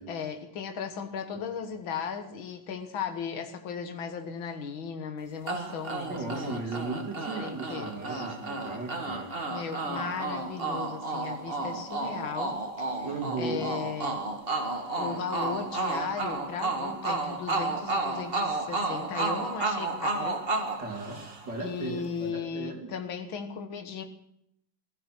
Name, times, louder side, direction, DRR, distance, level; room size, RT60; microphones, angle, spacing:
voice 1, 0.0-6.6 7.4-8.3 9.5-13.1 13.4-14.2 14.9-20.4 21.6-24.0, left 6 dB, 75° left, 6 dB, 2.2 m, -36 dB
sound 1, 5.5-21.7, right 3 dB, 30° right, 2.0 m, -32 dB
voice 2, 6.0-9.3 13.0-13.7 20.8-21.2 21.5-22.9, right 3 dB, 55° right, 1 dB, 3.5 m, -36 dB
16.5 x 14.5 x 6.1 m, 0.78 s
omnidirectional pair, 2.2 m